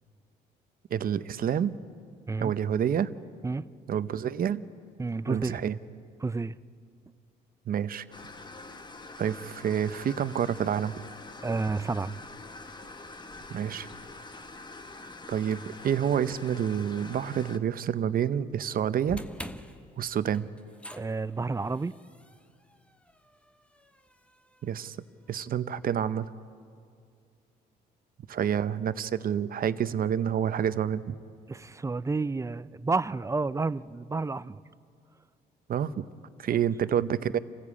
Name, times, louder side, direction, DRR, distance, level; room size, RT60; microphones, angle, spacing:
voice 1, 0.9-1.7 2.4-3.1 3.9-4.6 5.3-5.8 7.7-8.0 9.2-11.0 13.5-13.9 15.3-19.2 20.0-20.5 24.6-25.0 25.3-26.3 28.3-31.1 35.7-36.0 36.4-37.4, right 9 dB, 55° right, 14 dB, 0.8 m, -28 dB
voice 2, 5.0-5.6 6.2-6.5 11.4-12.2 21.0-21.9 31.5-34.6 36.5-36.6, right 3 dB, 15° right, 17 dB, 0.5 m, -30 dB
sound 1, 8.1-17.6, left 2 dB, 25° left, 1.2 m, -45 dB
sound 2, 19.1-25.3, left 1 dB, 5° left, 1.0 m, -47 dB
27.5 x 15.0 x 8.5 m, 2.3 s
cardioid pair, 80°, 18 cm